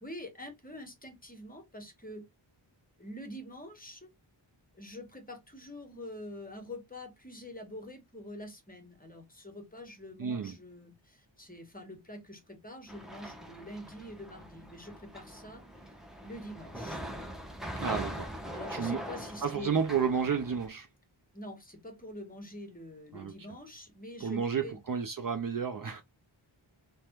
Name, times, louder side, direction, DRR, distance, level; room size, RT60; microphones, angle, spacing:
voice 1, 0.0-2.2 3.0-4.1 4.7-15.9 16.2-17.0 17.9-18.1 18.5-19.8 21.3-24.8, left 1 dB, 20° left, 1.0 m, -46 dB
voice 2, 10.2-10.6 17.8-18.3 18.7-19.0 19.4-20.9 23.1-23.3 24.2-26.0, right 6 dB, 45° right, 0.4 m, -31 dB
sound 1, 12.9-20.7, equal, ahead, 0.6 m, -42 dB
3.3 x 2.2 x 2.8 m
wide cardioid pair, 70°, 48 cm